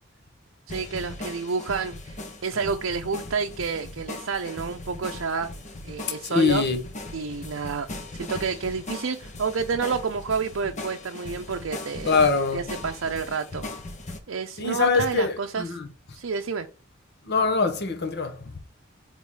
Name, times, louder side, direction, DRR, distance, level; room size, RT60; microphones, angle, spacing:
sound 1, 0.7-14.2, left 2 dB, 35° left, 1.0 m, -39 dB
voice 1, 0.7-5.5 5.8-6.6 7.1-12.2 12.5-13.6 14.3-15.8 16.1-16.7, right 5 dB, 70° right, 0.6 m, -29 dB
voice 2, 6.2-6.8 12.1-12.6 14.6-15.9 17.3-18.6, left 4 dB, 55° left, 1.0 m, -23 dB
4.7 x 3.7 x 5.5 m
head